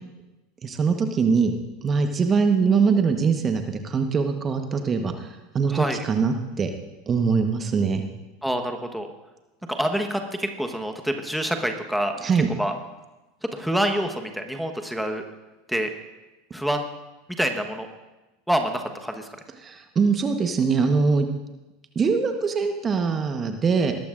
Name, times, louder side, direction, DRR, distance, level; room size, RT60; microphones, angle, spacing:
voice 1, 0.6-1.5 1.8-6.7 7.1-8.0 12.2-12.5 19.6-21.3 21.9-23.9, right 5 dB, 30° right, 6 dB, 1.2 m, -22 dB
voice 2, 5.7-6.0 8.4-9.1 9.7-12.1 12.5-12.7 13.5-15.2 15.7-15.9 16.5-16.8 17.4-17.9 18.5-19.3, equal, ahead, 4 dB, 1.2 m, -26 dB
20.0 x 13.5 x 2.6 m, 1.1 s
hypercardioid pair, 85°, 0 cm